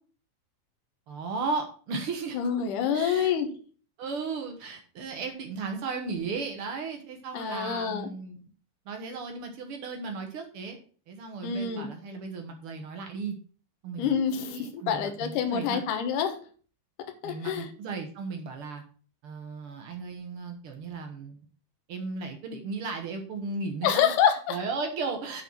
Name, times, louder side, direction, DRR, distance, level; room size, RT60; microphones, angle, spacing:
voice 1, 1.1-2.5 2.9-3.3 4.0-8.4 8.8-10.8 11.1-13.3 13.8-15.8 17.2-18.8 19.2-21.5 21.9-24.1 24.5-25.4, right 4 dB, 65° right, 4 dB, 1.4 m, -35 dB
voice 2, 2.3-3.5 7.3-8.1 11.4-11.9 14.0-16.4 17.2-17.7 23.8-24.6, left 8 dB, 65° left, 6 dB, 2.3 m, -27 dB
7.9 x 4.8 x 5.7 m, 0.39 s
omnidirectional pair, 4.4 m